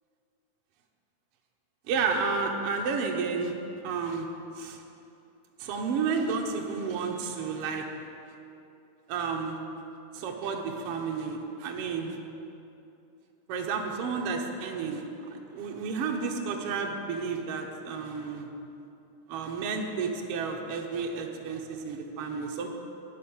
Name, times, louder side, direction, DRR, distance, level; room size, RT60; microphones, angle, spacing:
voice 1, 1.9-3.5 3.8-4.3 4.6-4.8 5.6-7.9 9.1-9.6 10.1-12.2 13.5-18.5 19.3-22.8, right 5 dB, 65° right, 2 dB, 1.6 m, -31 dB
11.5 x 5.8 x 8.7 m, 2.7 s
omnidirectional pair, 3.4 m